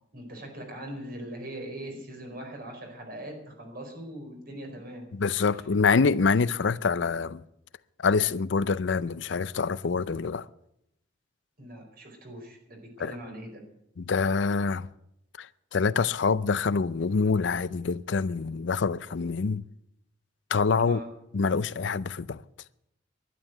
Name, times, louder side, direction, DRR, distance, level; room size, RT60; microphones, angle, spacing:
voice 1, 0.1-5.1 11.6-13.6 20.8-21.1, right 1 dB, 55° right, 4.8 m, -41 dB
voice 2, 5.1-7.4 8.0-10.5 13.0-13.2 14.0-14.9 15.4-19.6 20.5-21.0 21.3-22.4, left 5 dB, 75° left, 0.5 m, -26 dB
12.0 x 11.0 x 9.2 m
head